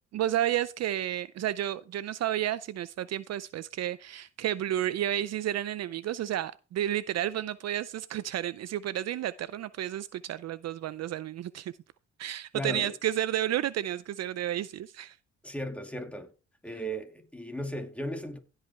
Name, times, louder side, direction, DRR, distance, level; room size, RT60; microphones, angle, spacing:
voice 1, 0.1-11.7 12.2-15.2, right 12 dB, 60° right, 0.5 m, -31 dB
voice 2, 12.5-12.9 15.4-16.3 16.6-18.4, equal, 5° left, 2.4 m, -36 dB
16.5 x 5.6 x 3.4 m
cardioid pair, 90°, 30 cm